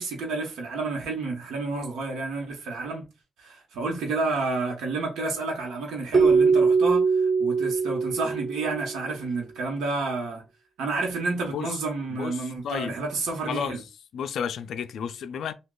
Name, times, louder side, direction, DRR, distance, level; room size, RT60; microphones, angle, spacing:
voice 1, 0.0-3.1 3.4-10.4 10.8-13.8, right 3 dB, 85° right, 1.0 m, -30 dB
Keyboard (musical), 6.1-9.0, right 5 dB, 25° right, 0.3 m, -22 dB
voice 2, 12.1-12.9 13.5-13.8 14.1-15.5, left 7 dB, 75° left, 0.3 m, -32 dB
3.0 x 2.3 x 3.7 m
cardioid pair, 100°, 0 cm